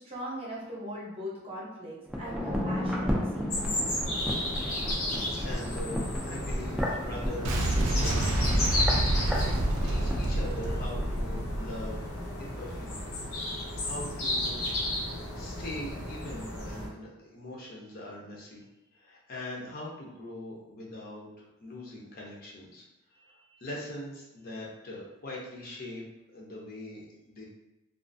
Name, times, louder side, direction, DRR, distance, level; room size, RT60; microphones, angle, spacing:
voice 1, 0.0-3.8, equal, 25° right, -5 dB, 0.7 m, -40 dB
sound 1, 2.1-11.1 11.4-11.5, equal, 5° right, 0.3 m, -34 dB
sound 2, 3.5-16.9, left 1 dB, 80° left, 0.7 m, -34 dB
voice 2, 5.4-8.6 9.8-12.1 12.4-13.1 13.5-14.6 15.3-18.6 18.9-22.8 23.1-26.0 26.3-27.4, left 1 dB, 45° left, -4 dB, 0.5 m, -42 dB
Boom, 7.4-12.4, right 1 dB, 90° right, 0.4 m, -28 dB
2.4 x 2.4 x 2.5 m, 0.97 s
head